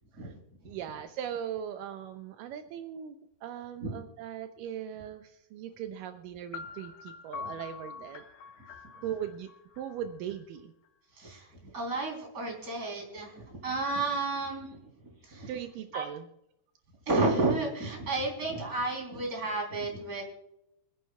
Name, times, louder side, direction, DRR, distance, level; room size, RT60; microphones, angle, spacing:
voice 1, 0.7-3.2 3.4-8.2 8.9-9.5 9.8-10.7 15.5-16.3, right 9 dB, 80° right, 7 dB, 2.3 m, -39 dB
sound 1, 6.5-10.4, left 5 dB, 75° left, 2.5 m, -45 dB
voice 2, 11.2-11.5 11.7-14.8 15.2-15.5 15.9-16.1 17.1-20.2, right 3 dB, 25° right, 1 dB, 3.7 m, -31 dB
27.5 x 9.4 x 2.3 m, 0.80 s
omnidirectional pair, 4.0 m